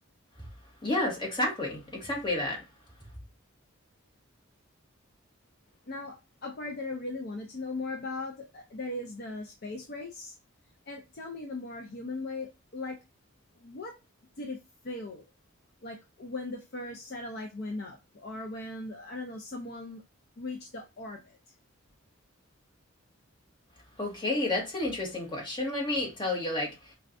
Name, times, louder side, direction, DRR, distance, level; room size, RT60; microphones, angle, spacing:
voice 1, 0.8-2.6 24.0-26.9, left 2 dB, 20° left, 1.2 m, -30 dB
voice 2, 5.9-10.3 10.9-13.0 13.6-13.9 14.4-14.6 14.8-15.3 15.8-20.0 20.4-21.4, left 2 dB, 50° left, 0.5 m, -38 dB
4.2 x 2.3 x 2.5 m
head